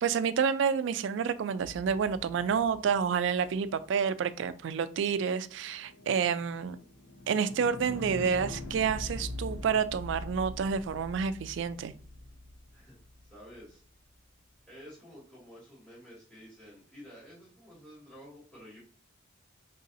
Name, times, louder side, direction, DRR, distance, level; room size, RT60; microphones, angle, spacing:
voice 1, 0.0-6.8 7.3-11.9, right 6 dB, 65° right, 13 dB, 0.3 m, -29 dB
sound 1, 1.6-3.7 5.6-13.6, left 1 dB, 80° left, 0.6 m, -43 dB
voice 2, 13.2-13.8 14.7-18.8, equal, 5° left, -8 dB, 2.0 m, -51 dB
3.9 x 3.9 x 2.6 m, 0.43 s
head